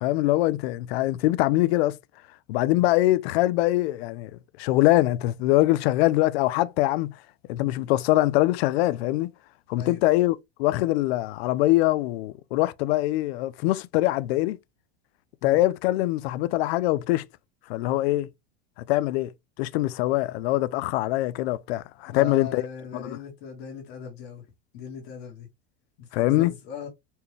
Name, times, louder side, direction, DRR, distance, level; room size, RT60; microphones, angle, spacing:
voice 1, 0.0-2.0 2.5-4.3 4.6-7.2 7.5-9.3 9.7-14.6 15.4-17.3 17.7-18.3 18.9-19.3 19.6-22.6 22.9-23.2 26.1-26.5, left 17 dB, 80° left, 0.5 m, -23 dB
voice 2, 22.1-24.4 24.7-25.5 26.0-26.9, left 7 dB, 60° left, 1.4 m, -39 dB
4.3 x 2.3 x 3.1 m
supercardioid pair, 125°, 31 cm